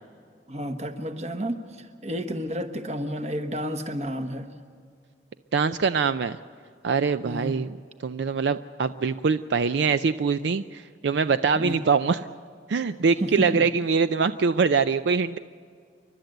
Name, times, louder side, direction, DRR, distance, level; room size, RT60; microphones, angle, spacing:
voice 1, 0.5-4.5 7.2-7.6 11.5-11.8 13.2-13.7, equal, 35° right, 6 dB, 1.2 m, -31 dB
voice 2, 5.5-6.4 6.8-7.7 8.0-12.2 12.7-15.4, right 5 dB, 70° right, 12 dB, 0.4 m, -23 dB
29.0 x 12.0 x 7.9 m, 2.1 s
head